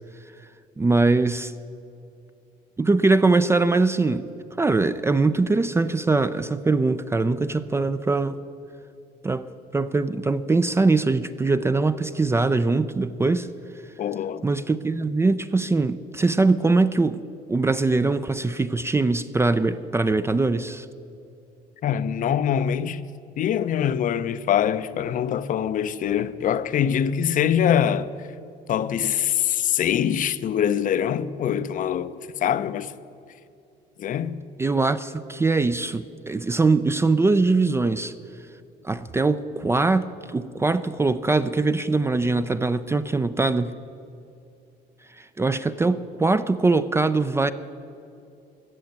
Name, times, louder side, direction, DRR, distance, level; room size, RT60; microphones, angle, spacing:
voice 1, 0.8-1.5 2.8-4.3 4.6-8.4 9.2-9.5 9.7-13.5 14.4-17.2 17.5-20.9 34.6-38.1 38.8-43.7 45.2-47.5, right 3 dB, 15° right, 0.4 m, -22 dB
voice 2, 14.0-14.4 21.8-23.0 23.4-28.1 28.7-32.9 34.0-34.4, left 9 dB, 50° left, 0.6 m, -24 dB
14.0 x 7.6 x 9.3 m
cardioid pair, 110°, 17 cm